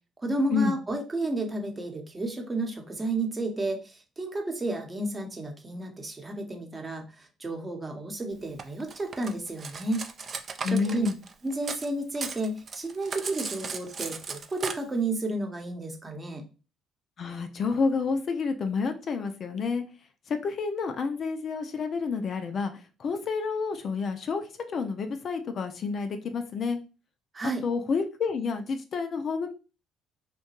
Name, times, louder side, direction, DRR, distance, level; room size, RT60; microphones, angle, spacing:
voice 1, 0.2-10.1 10.6-11.1 11.4-16.4 27.3-27.6, right 2 dB, 25° right, 3 dB, 0.8 m, -32 dB
Cutlery silverware, 8.6-11.9 12.1-14.7, right 5 dB, 45° right, 0.4 m, -36 dB
voice 2, 10.6-11.2 17.2-19.8 20.3-22.7 23.0-24.4 24.7-26.8 27.6-29.5, left 5 dB, 50° left, 7 dB, 0.4 m, -29 dB
2.8 x 2.2 x 2.9 m, 0.33 s
supercardioid pair, 80°, 0 cm